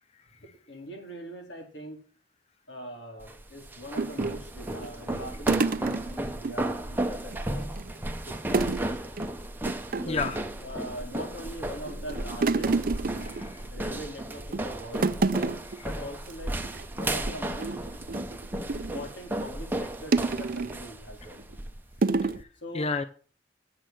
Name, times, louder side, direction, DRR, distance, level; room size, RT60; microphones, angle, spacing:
voice 1, 0.4-2.0 2.7-7.7 8.3-9.1 10.1-10.2 10.6-12.7 13.7-15.1 15.8-16.6 16.9-17.8 18.7-21.4 22.6-22.9, equal, 80° left, 1 dB, 3.9 m, -42 dB
sound 1, 3.2-22.4, right 1 dB, 10° right, 0.8 m, -34 dB
sound 2, 4.0-6.6 6.9-7.0 7.3-8.0 8.5-8.9 9.2-9.3 9.7-10.5 11.0-11.5 11.9-14.0 14.4-14.7 14.9-15.8 16.2-16.3 16.6-16.8 17.3-19.1 20.1-20.8 21.4-21.6 22.0-22.4, right 3 dB, 50° right, 0.5 m, -29 dB
voice 2, 10.0-10.4 13.1-13.6 15.8-15.9 22.2-22.5 22.7-23.0, left 4 dB, 35° left, 10 dB, 0.5 m, -32 dB
8.5 x 7.6 x 7.5 m, 0.43 s
head